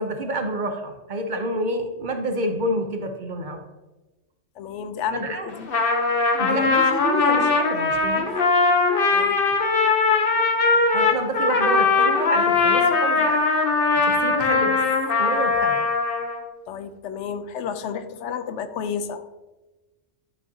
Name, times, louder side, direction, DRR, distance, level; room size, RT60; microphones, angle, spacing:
voice 1, 0.0-3.7 5.1-5.5 6.4-8.3 10.9-13.5 14.0-14.8 15.2-15.9, right 1 dB, 50° right, 5 dB, 0.8 m, -28 dB
voice 2, 4.6-5.7 9.1-9.4 16.7-19.3, left 7 dB, 85° left, 11 dB, 0.9 m, -31 dB
Trumpet, 5.5-16.4, left 4 dB, 55° left, 1.0 m, -20 dB
11.0 x 5.5 x 2.8 m, 1.1 s
omnidirectional pair, 1.2 m